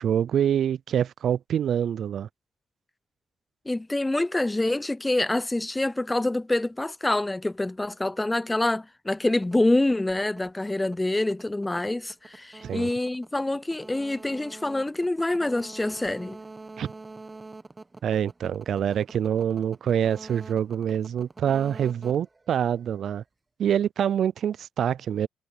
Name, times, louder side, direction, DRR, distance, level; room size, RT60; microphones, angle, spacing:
voice 1, 0.0-2.3 12.6-12.9 16.8-16.9 18.0-23.2 23.6-25.3, right 9 dB, 65° right, 0.3 m, -26 dB
voice 2, 3.7-16.4, left 2 dB, 15° left, 0.4 m, -26 dB
sound 1, 9.3-23.1, right 3 dB, 20° right, 1.2 m, -46 dB
cardioid pair, 90°, 0 cm